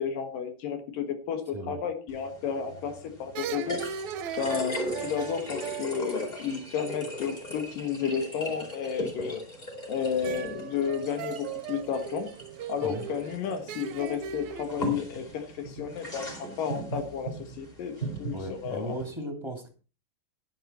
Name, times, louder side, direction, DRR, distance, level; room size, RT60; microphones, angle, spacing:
voice 1, 0.0-3.8 4.4-9.4 9.9-12.3 12.7-18.9, left 7 dB, 80° left, 6 dB, 3.1 m, -32 dB
sound 1, 2.1-19.1, equal, 10° left, 4.5 m, -39 dB
sound 2, 2.6-2.9 3.3-7.0 10.2-14.7, right 9 dB, 75° right, 1.9 m, -39 dB
voice 2, 18.3-19.7, right 1 dB, 10° right, 4 dB, 2.1 m, -36 dB
11.5 x 11.0 x 4.3 m, 0.34 s
omnidirectional pair, 3.9 m